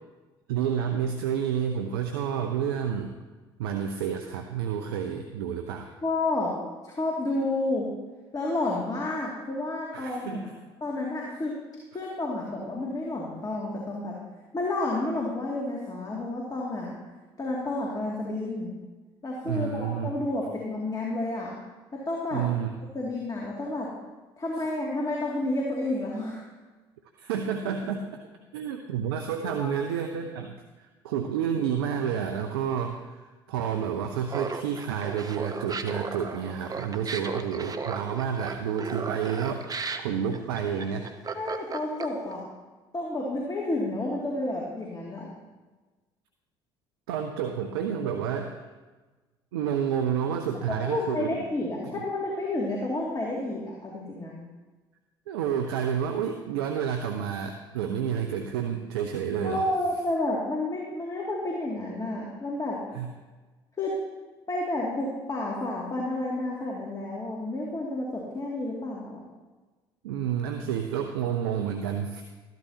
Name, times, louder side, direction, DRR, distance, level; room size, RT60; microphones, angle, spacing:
voice 1, 0.5-3.2 3.6-5.9 9.9-10.5 19.4-20.2 22.3-22.7 27.2-28.2 28.5-41.1 47.1-48.7 49.5-51.4 51.9-52.0 55.3-59.7 62.9-63.1 70.0-72.2, right 8 dB, 80° right, 5 dB, 0.7 m, -30 dB
voice 2, 6.0-6.5 6.8-7.9 8.3-10.5 10.8-11.5 11.9-14.1 14.5-17.0 17.4-18.7 19.2-21.5 21.9-22.4 22.9-23.9 24.4-26.5 29.4-29.8 41.3-42.4 42.9-45.3 50.7-54.4 59.4-62.8 63.8-63.9 64.5-69.2, left 2 dB, 30° left, -3 dB, 2.4 m, -30 dB
Laughter, 34.3-42.3, right 5 dB, 30° right, 1.0 m, -35 dB
13.5 x 12.0 x 2.8 m, 1.3 s
hypercardioid pair, 60°, 13 cm